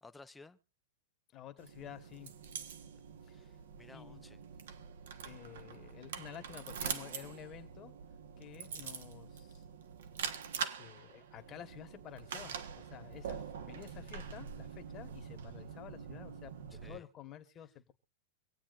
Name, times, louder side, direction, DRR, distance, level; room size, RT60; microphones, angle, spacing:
voice 1, 0.0-0.6 3.3-4.4 13.6-13.7 16.7-17.1, left 3 dB, 5° left, 0.6 m, -56 dB
voice 2, 1.3-2.3 3.2-3.5 3.9-4.2 5.2-7.9 8.4-9.6 10.8-17.9, left 11 dB, 25° left, 1.3 m, -51 dB
sound 1, 1.6-17.0, right 7 dB, 80° right, 1.3 m, -44 dB
25.5 x 8.6 x 2.5 m
supercardioid pair, 160°, 0 cm